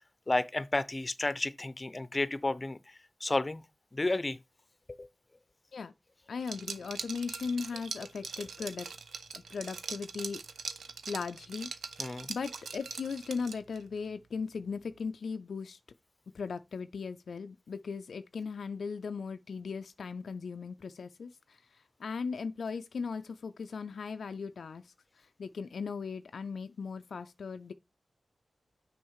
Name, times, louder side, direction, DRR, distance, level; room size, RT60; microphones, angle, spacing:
voice 1, 0.3-2.8 3.2-3.6 3.9-4.4 5.0-5.1 12.0-12.3, left 2 dB, 35° left, 0.7 m, -31 dB
voice 2, 6.3-8.9 9.3-10.4 11.1-11.7 12.3-15.8 16.3-27.7, left 5 dB, 80° left, 0.4 m, -38 dB
Liquid, 6.4-13.8, right 5 dB, 85° right, 0.6 m, -42 dB
6.2 x 5.4 x 4.8 m
cardioid pair, 45°, 0 cm